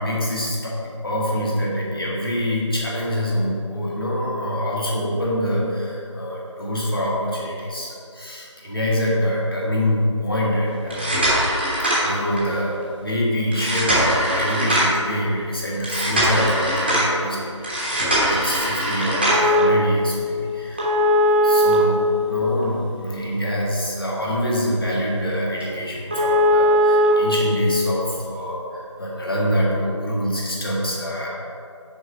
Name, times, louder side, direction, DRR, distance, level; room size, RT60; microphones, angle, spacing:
voice 1, 0.0-11.1 12.0-20.9 21.3-31.3, equal, 50° left, -5 dB, 1.7 m, -25 dB
sound 1, 10.8-12.6 13.5-15.1 15.8-17.1 17.6-19.6 20.8-22.6 23.1-23.2 23.7-23.8 24.3-24.4 24.7-24.8 25.2-25.3 25.6-25.7 26.1-27.1 28.2-28.3, equal, 20° right, 1.1 m, -20 dB
6.3 x 4.2 x 5.4 m, 2.5 s
figure-of-eight pair, 175°, 16 cm